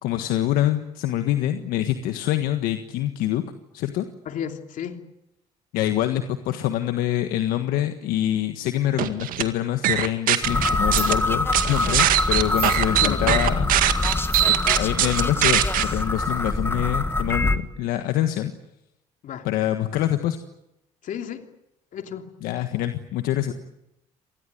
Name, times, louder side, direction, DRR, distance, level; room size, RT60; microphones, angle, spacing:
voice 1, 0.0-3.4 3.7-4.1 5.7-13.7 14.5-18.5 19.4-20.4 22.4-23.5, left 13 dB, 80° left, 8 dB, 1.6 m, -25 dB
voice 2, 4.2-5.0 12.9-13.4 19.2-19.5 21.0-21.5 21.9-22.3 23.5-23.6, left 8 dB, 65° left, 6 dB, 3.0 m, -33 dB
sound 1, 9.0-9.4 9.8-11.1 11.5-15.8, right 13 dB, 70° right, 2.0 m, -21 dB
sound 2, 10.4-17.6, left 2 dB, 15° left, 1.8 m, -24 dB
sound 3, 10.7-11.2 11.6-11.7 12.4-12.8 13.7-14.6 15.6-15.7 15.8-15.9, right 6 dB, 45° right, 3.2 m, -36 dB
26.5 x 19.5 x 9.5 m, 0.86 s
supercardioid pair, 70°, 15 cm